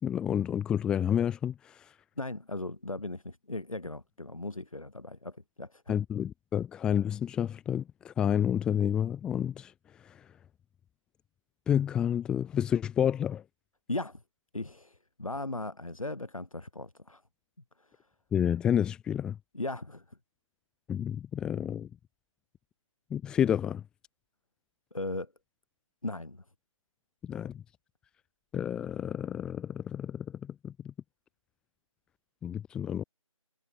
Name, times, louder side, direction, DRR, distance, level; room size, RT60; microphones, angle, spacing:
voice 1, 0.0-1.9 5.9-9.7 10.0-10.2 11.7-13.4 18.3-19.4 20.9-21.9 23.1-23.8 27.2-27.6 28.5-30.9 32.4-33.0, left 9 dB, 5° left, 2.8 m, -30 dB
voice 2, 2.2-6.0 13.9-14.2 14.5-17.2 17.8-17.9 19.5-20.2 24.9-25.3 26.0-26.4, left 2 dB, 75° left, 7.5 m, -37 dB
figure-of-eight pair, 160°, 18 cm